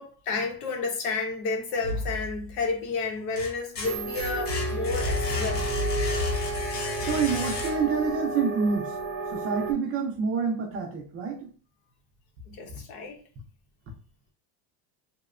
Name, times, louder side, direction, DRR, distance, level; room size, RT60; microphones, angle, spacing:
voice 1, 0.0-5.6 12.5-13.2, left 4 dB, 80° left, 1.0 m, -31 dB
sound 1, 1.8-2.7 3.1-8.1, left 3 dB, 25° left, 0.3 m, -31 dB
sound 2, 3.8-9.7, right 3 dB, 80° right, 0.8 m, -32 dB
voice 2, 7.0-9.0 9.3-11.5, right 5 dB, 35° right, 0.5 m, -27 dB
2.8 x 2.1 x 2.4 m
cardioid pair, 155°, 41 cm